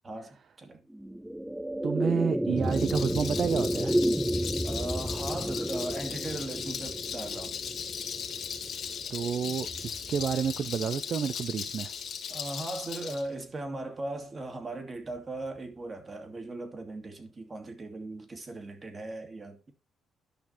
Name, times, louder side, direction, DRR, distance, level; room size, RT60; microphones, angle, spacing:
voice 1, 0.0-0.8 4.6-7.6 12.3-19.7, right 2 dB, 35° right, 2.4 m, -38 dB
sound 1, 0.9-11.4, right 1 dB, 5° right, 0.4 m, -32 dB
voice 2, 1.8-4.0 9.1-11.9, right 7 dB, 55° right, 0.6 m, -30 dB
Rattle, 2.6-13.2, left 7 dB, 65° left, 1.9 m, -38 dB
11.5 x 5.9 x 4.4 m
cardioid pair, 90°, 0 cm